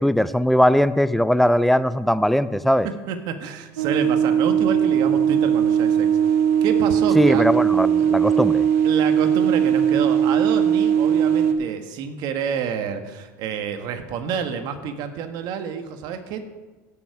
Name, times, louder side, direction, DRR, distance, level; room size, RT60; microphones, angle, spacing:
voice 1, 0.0-2.9 7.2-8.7, equal, ahead, 14 dB, 0.5 m, -19 dB
voice 2, 2.8-7.5 8.0-8.4 8.8-16.4, right 7 dB, 60° right, 7 dB, 1.5 m, -29 dB
sound 1, 3.8-11.5, right 8 dB, 90° right, 1.0 m, -19 dB
16.0 x 6.9 x 4.8 m, 1.2 s
supercardioid pair, 100°, 8 cm